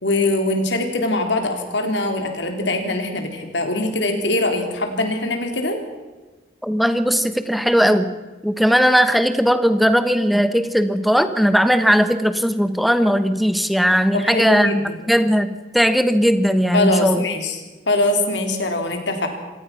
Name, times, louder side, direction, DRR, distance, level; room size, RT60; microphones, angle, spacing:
voice 1, 0.0-5.8 14.1-15.0 16.7-19.3, left 2 dB, 65° left, 5 dB, 3.6 m, -22 dB
voice 2, 6.6-8.1 8.4-17.2, equal, ahead, 10 dB, 1.2 m, -18 dB
26.5 x 17.5 x 5.9 m, 1.2 s
head